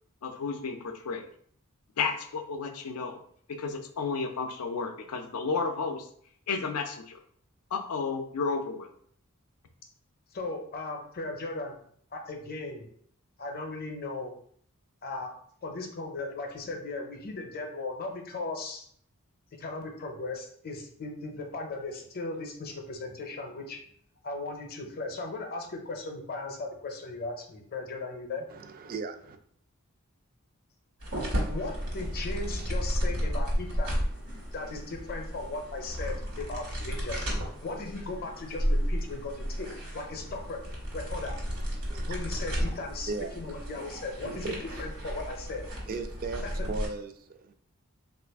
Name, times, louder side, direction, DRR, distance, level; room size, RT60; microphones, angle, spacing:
voice 1, 0.2-1.3 2.0-3.2 3.5-6.1 6.5-7.2 7.7-8.9, left 4 dB, 85° left, 6 dB, 0.5 m, -32 dB
voice 2, 10.3-11.8 12.1-12.9 13.4-14.3 15.0-15.3 15.6-18.9 19.6-23.8 24.2-28.4 31.5-34.0 34.5-37.2 37.6-40.6 40.9-41.4 42.1-43.1 43.4-45.6 46.4-46.7, left 3 dB, 45° left, 3 dB, 0.6 m, -37 dB
voice 3, 28.5-29.4 41.8-42.2 42.5-42.6 43.1-43.4 43.8-43.9 44.4-44.9 45.9-47.5, right 3 dB, 40° right, 8 dB, 0.3 m, -37 dB
sound 1, 31.0-46.9, equal, 75° right, 1.2 m, -33 dB
3.2 x 2.4 x 3.4 m, 0.62 s
head